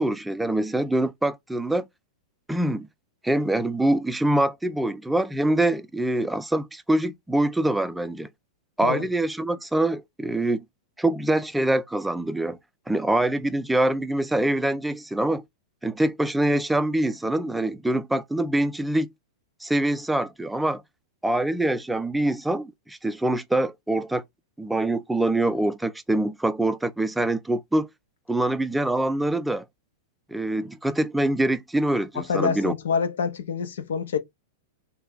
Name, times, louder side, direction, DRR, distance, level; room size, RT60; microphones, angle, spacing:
voice 1, 0.0-1.9 2.5-2.9 3.2-8.3 8.8-10.6 11.0-12.6 12.9-15.4 15.8-19.1 19.6-20.8 21.2-24.2 24.6-27.9 28.3-29.7 30.3-32.7, right 1 dB, 5° right, 0.4 m, -24 dB
voice 2, 32.1-34.2, left 6 dB, 70° left, 0.7 m, -26 dB
3.3 x 2.2 x 3.5 m
hypercardioid pair, 105°, 0 cm